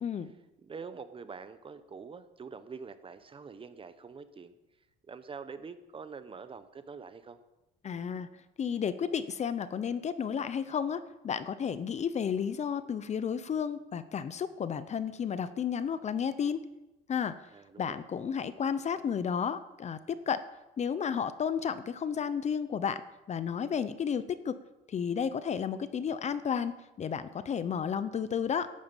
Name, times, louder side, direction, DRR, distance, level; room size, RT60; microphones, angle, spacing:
voice 1, 0.0-0.3 7.8-8.3 8.6-16.6 17.1-17.3 17.8-20.4 20.8-23.0 23.3-24.5 24.9-28.7, left 7 dB, 35° left, 14 dB, 0.8 m, -32 dB
voice 2, 0.6-4.6 5.0-7.4 17.5-18.0, right 5 dB, 30° right, 11 dB, 1.1 m, -45 dB
12.0 x 9.4 x 7.2 m, 0.99 s
cardioid pair, 100°, 19 cm